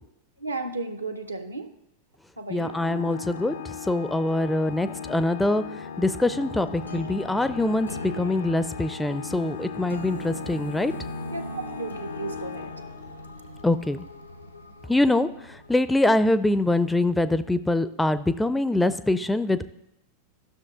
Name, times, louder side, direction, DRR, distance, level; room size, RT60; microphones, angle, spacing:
voice 1, 0.4-1.7 2.4-2.8 11.3-12.7, right 3 dB, 85° right, 7 dB, 0.8 m, -34 dB
voice 2, 2.5-5.6 6.0-10.9 13.6-14.0 14.9-19.6, left 2 dB, 5° left, 14 dB, 0.4 m, -24 dB
Organ, 2.6-13.4, left 7 dB, 65° left, 0.4 m, -38 dB
sound 1, 6.5-16.7, equal, 90° left, 0.8 m, -41 dB
13.0 x 6.3 x 3.7 m, 0.84 s
figure-of-eight pair, 90°, 0 cm